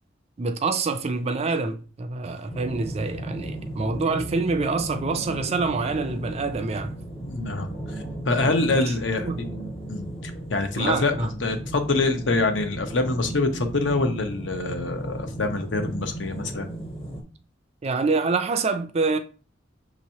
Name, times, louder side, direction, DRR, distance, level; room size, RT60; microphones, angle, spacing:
voice 1, 0.4-6.9 8.5-8.9 9.2-9.4 10.8-11.3 17.8-19.2, right 4 dB, 35° right, 0.4 m, -26 dB
sound 1, 2.5-17.2, right 1 dB, 30° left, 0.8 m, -35 dB
voice 2, 7.2-7.7 8.3-9.6 9.9-16.7, left 3 dB, 70° left, 0.8 m, -25 dB
6.2 x 3.0 x 2.8 m
head